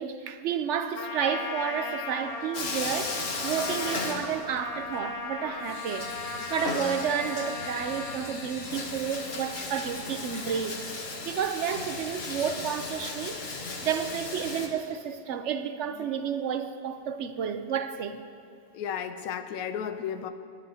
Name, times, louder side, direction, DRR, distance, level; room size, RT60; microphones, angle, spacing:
voice 1, 0.0-10.8 11.2-13.3 13.8-18.2, right 8 dB, 60° right, 0.8 m, -31 dB
Trumpet, 0.9-8.3, left 4 dB, 85° left, 0.3 m, -37 dB
Bathtub (filling or washing), 2.5-4.8 5.1-5.2 5.6-14.7, left 3 dB, 45° left, 1.2 m, -36 dB
voice 2, 18.7-20.3, left 8 dB, 70° left, 1.0 m, -34 dB
20.0 x 10.5 x 2.8 m
omnidirectional pair, 1.7 m